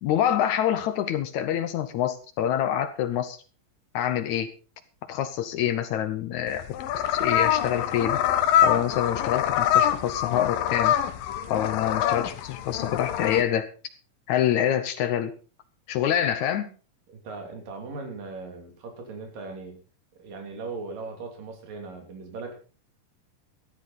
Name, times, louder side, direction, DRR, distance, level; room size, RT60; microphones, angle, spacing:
voice 1, 0.0-3.4 3.9-4.5 5.1-6.6 6.9-8.2 8.6-11.0 11.5-13.7 14.3-15.3 15.9-16.7, left 10 dB, 70° left, 11 dB, 2.0 m, -26 dB
sound 1, 6.5-13.4, left 10 dB, 90° left, 2.7 m, -25 dB
voice 2, 17.1-19.8 20.2-22.5, right 4 dB, 75° right, 4 dB, 4.7 m, -38 dB
13.5 x 13.5 x 4.2 m, 0.35 s
omnidirectional pair, 3.9 m